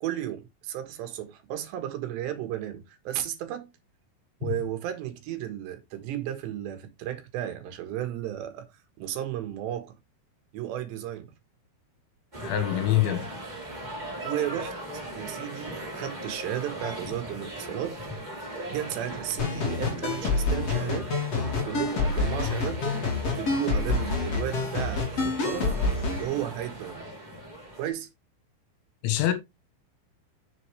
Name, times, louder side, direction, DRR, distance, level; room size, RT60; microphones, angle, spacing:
voice 1, 0.0-3.7 4.4-8.7 9.0-9.9 10.5-11.3 14.2-18.0 18.7-25.8 26.2-27.1 27.8-28.1, right 12 dB, 75° right, 3.5 m, -34 dB
sound 1, 12.3-27.9, right 1 dB, 10° right, 2.6 m, -38 dB
voice 2, 12.4-13.3 29.0-29.3, left 13 dB, 80° left, 3.7 m, -24 dB
sound 2, 19.4-26.2, left 4 dB, 40° left, 3.5 m, -28 dB
7.8 x 7.4 x 3.3 m
omnidirectional pair, 5.2 m